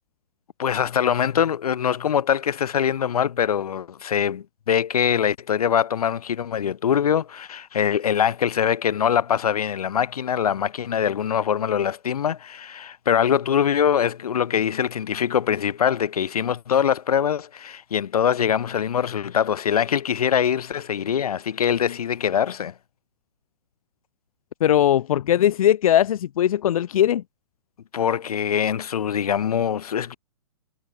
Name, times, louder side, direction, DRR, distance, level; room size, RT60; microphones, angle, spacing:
voice 1, 0.6-22.7 27.9-30.2, left 8 dB, 85° left, 1.2 m, -23 dB
voice 2, 24.6-27.2, left 11 dB, 70° left, 0.8 m, -19 dB
hypercardioid pair, 150°, 19 cm